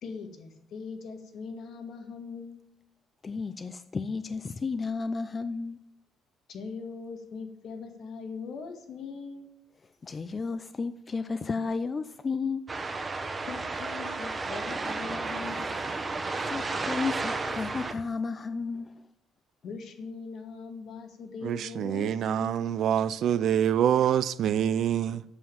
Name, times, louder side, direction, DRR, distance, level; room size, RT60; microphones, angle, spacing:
voice 1, 0.0-2.6 6.5-9.5 13.5-15.6 19.6-22.8, left 5 dB, 55° left, 1.9 m, -41 dB
voice 2, 3.2-5.8 10.0-12.6 16.5-19.0, left 4 dB, 25° left, 0.4 m, -33 dB
sound 1, 12.7-17.9, right 3 dB, 20° right, 0.9 m, -32 dB
voice 3, 21.4-25.2, right 9 dB, 55° right, 0.5 m, -26 dB
8.1 x 7.4 x 8.6 m
cardioid pair, 160°, 0 cm